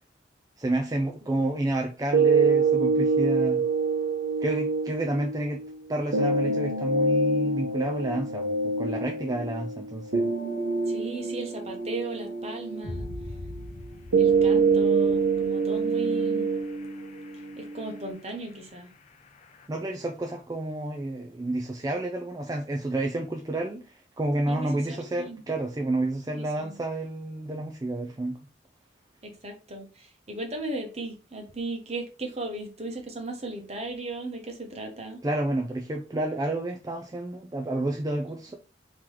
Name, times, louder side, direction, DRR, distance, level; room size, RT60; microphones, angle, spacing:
voice 1, 0.6-3.6 4.4-5.6 5.9-10.3 19.7-28.4 35.2-38.6, right 1 dB, 20° right, 0.4 m, -30 dB
sound 1, 2.1-18.1, right 4 dB, 80° right, 1.0 m, -26 dB
sound 2, 8.5-8.6 10.6-10.7 10.9-19.7, left 2 dB, 35° left, 0.6 m, -45 dB
voice 2, 10.9-13.1 14.2-16.5 17.6-18.9 24.5-25.4 26.3-26.8 29.2-35.2, right 2 dB, 35° right, 1.1 m, -37 dB
3.8 x 3.0 x 4.5 m
head